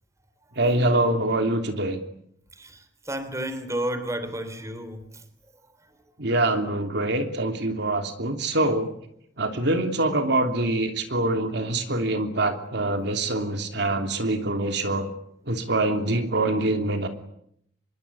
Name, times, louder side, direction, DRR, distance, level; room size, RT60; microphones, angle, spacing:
voice 1, 0.6-2.0 6.2-8.9 9.4-15.1 15.5-17.1, right 2 dB, 65° right, 6 dB, 3.1 m, -24 dB
voice 2, 2.6-5.1, right 1 dB, 15° right, 11 dB, 3.7 m, -31 dB
26.5 x 22.5 x 9.9 m, 0.71 s
head